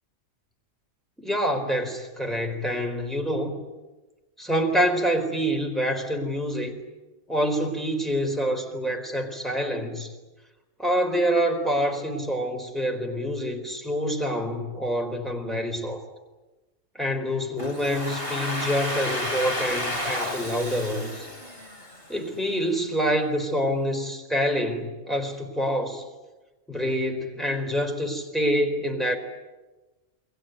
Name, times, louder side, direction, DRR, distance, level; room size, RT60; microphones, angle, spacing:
voice 1, 1.2-3.6 4.4-6.8 7.3-10.1 10.8-16.0 16.9-21.3 22.1-26.0 26.7-29.2, equal, ahead, 3 dB, 4.2 m, -26 dB
Domestic sounds home sounds, 17.6-22.3, left 1 dB, 45° left, 4.6 m, -31 dB
29.0 x 22.0 x 9.3 m, 1.1 s
omnidirectional pair, 1.4 m